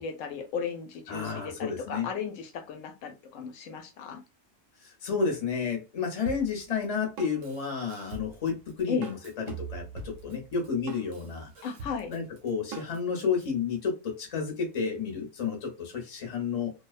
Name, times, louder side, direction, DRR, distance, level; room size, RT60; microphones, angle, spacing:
voice 1, 0.0-4.2 8.9-9.1 11.6-12.1, left 6 dB, 85° left, 1.0 m, -35 dB
voice 2, 1.1-2.1 4.8-11.5 12.1-16.7, left 6 dB, 35° left, 0.7 m, -31 dB
Drum kit, 6.3-13.5, right 5 dB, 85° right, 1.0 m, -43 dB
2.5 x 2.1 x 2.4 m
omnidirectional pair, 1.3 m